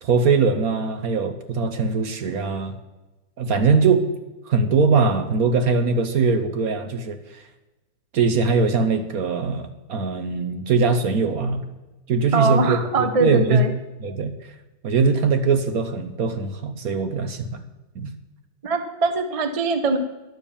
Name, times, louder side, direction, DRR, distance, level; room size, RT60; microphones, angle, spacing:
voice 1, 0.0-2.7 3.4-4.0 4.5-7.4 8.1-11.6 12.1-12.8 13.2-13.6 14.0-14.3 14.8-17.6 17.9-18.1, right 4 dB, 60° right, 8 dB, 1.1 m, -21 dB
voice 2, 12.3-13.7 18.6-20.0, right 3 dB, 35° right, 8 dB, 0.5 m, -22 dB
11.0 x 7.1 x 7.0 m, 1.1 s
omnidirectional pair, 2.1 m